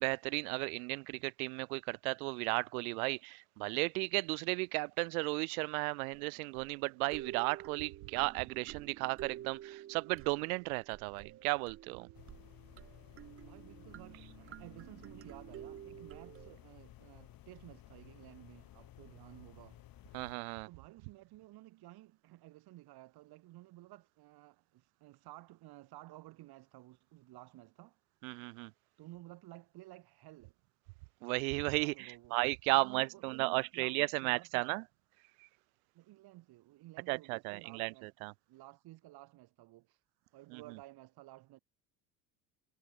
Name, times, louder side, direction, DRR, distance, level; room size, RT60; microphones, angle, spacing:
voice 1, 0.0-12.1 20.1-20.7 28.2-28.7 31.2-34.8 35.4-35.5 37.1-38.3 40.5-40.6, right 28 dB, 90° right, 0.6 m, -35 dB
sound 1, 6.1-16.5, right 12 dB, 35° right, 0.5 m, -51 dB
sound 2, 12.1-20.3, left 13 dB, 55° left, 2.4 m, -56 dB
voice 2, 13.4-19.8 20.6-28.0 29.0-30.5 31.7-32.4 32.7-34.8 35.9-38.1 38.5-40.0 40.3-41.6, right 17 dB, 60° right, 2.0 m, -54 dB
supercardioid pair, 90°, 42 cm